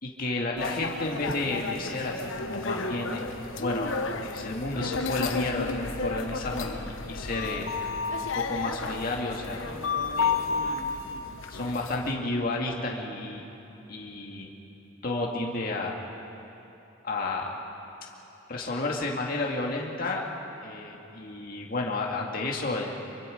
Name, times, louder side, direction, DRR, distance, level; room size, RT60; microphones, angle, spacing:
voice 1, 0.0-3.3 3.6-4.0 4.2-7.7 8.2-9.7 10.2-10.3 11.5-13.4 13.9-14.5 15.0-16.0 17.0-17.6 18.5-20.2 20.6-22.9, left 2 dB, 45° left, -1 dB, 2.1 m, -31 dB
sound 1, 0.6-12.1, left 4 dB, 80° left, 1.2 m, -32 dB
voice 2, 9.7-11.7, right 1 dB, 50° right, 1 dB, 2.5 m, -44 dB
25.5 x 23.5 x 5.2 m, 3.0 s
head